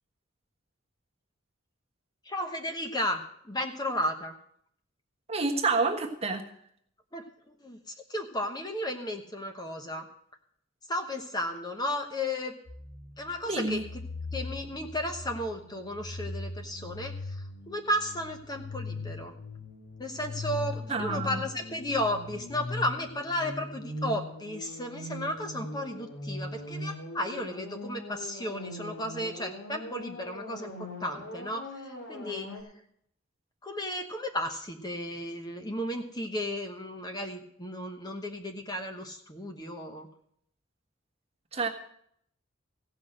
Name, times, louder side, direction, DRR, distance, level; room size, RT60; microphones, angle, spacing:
voice 1, 2.2-4.3 7.1-10.1 10.9-12.5 13.2-13.8 14.3-19.3 20.0-32.5 33.6-40.1, left 1 dB, 20° left, 5 dB, 1.0 m, -34 dB
voice 2, 5.3-6.4 13.5-13.8 20.9-21.4 41.5-41.7, right 3 dB, 30° right, 2 dB, 1.4 m, -28 dB
sound 1, 12.7-32.6, left 2 dB, 75° left, 3.4 m, -40 dB
16.0 x 6.1 x 7.6 m, 0.69 s
head